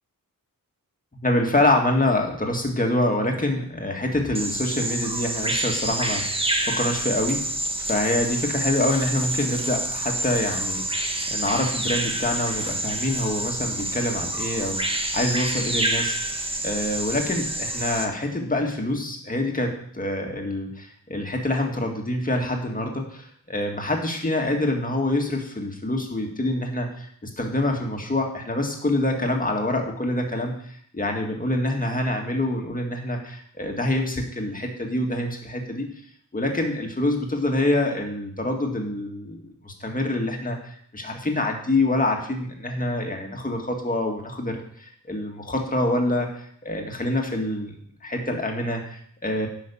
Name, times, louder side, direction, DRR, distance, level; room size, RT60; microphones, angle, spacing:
voice 1, 1.2-7.4 7.8-35.9 36.3-46.3 46.6-47.7 48.0-49.5, left 1 dB, 25° left, 2 dB, 2.0 m, -26 dB
Bird vocalization bird call bird song, 4.3-18.0, right 1 dB, 15° right, 1.1 m, -28 dB
10.5 x 5.8 x 7.0 m, 0.63 s
wide cardioid pair, 135°, 35 cm